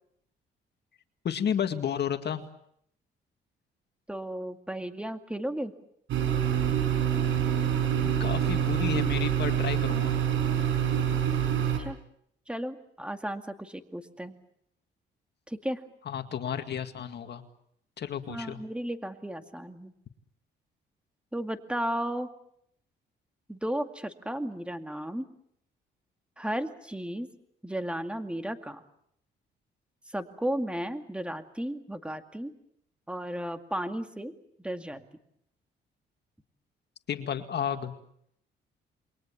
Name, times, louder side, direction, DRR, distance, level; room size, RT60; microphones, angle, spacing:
voice 1, 1.2-2.4 8.0-10.2 16.1-17.4 18.0-18.6 37.1-37.9, left 8 dB, 55° left, 7 dB, 2.1 m, -32 dB
voice 2, 4.1-5.7 11.8-12.0 12.5-14.3 15.5-15.8 18.3-19.9 21.3-22.3 23.5-25.3 26.4-27.3 27.6-28.8 30.1-32.5 33.1-34.3 34.6-35.0, right 1 dB, 5° right, 7 dB, 2.2 m, -34 dB
sound 1, 6.1-11.8, right 9 dB, 80° right, 5.4 m, -26 dB
28.0 x 22.5 x 7.3 m, 0.71 s
cardioid pair, 90°, 20 cm